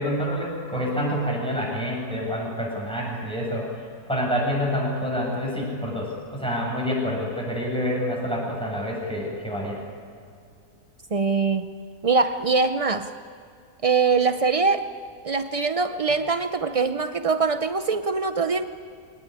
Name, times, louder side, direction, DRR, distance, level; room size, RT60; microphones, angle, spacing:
voice 1, 0.0-3.7 4.1-9.8, equal, 5° left, -3 dB, 7.9 m, -27 dB
voice 2, 11.1-11.7 12.0-13.1 13.8-14.9 15.2-18.6, right 4 dB, 55° right, 9 dB, 0.3 m, -23 dB
23.5 x 19.0 x 9.8 m, 2.4 s
omnidirectional pair, 1.7 m